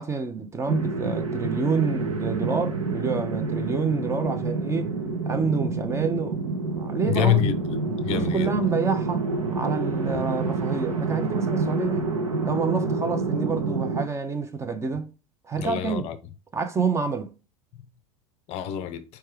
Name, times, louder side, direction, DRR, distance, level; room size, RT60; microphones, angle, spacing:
voice 1, 0.0-4.9 5.2-6.4 6.7-7.4 8.1-9.2 9.5-12.1 12.4-15.1 15.5-16.1 16.5-17.3, right 5 dB, 15° right, 0.5 m, -28 dB
sound 1, 0.7-14.0, right 3 dB, 75° right, 0.9 m, -28 dB
voice 2, 7.1-8.5 15.6-16.2 18.5-19.0, left 12 dB, 35° left, 0.5 m, -26 dB
4.6 x 3.2 x 3.4 m
figure-of-eight pair, 80°, 18 cm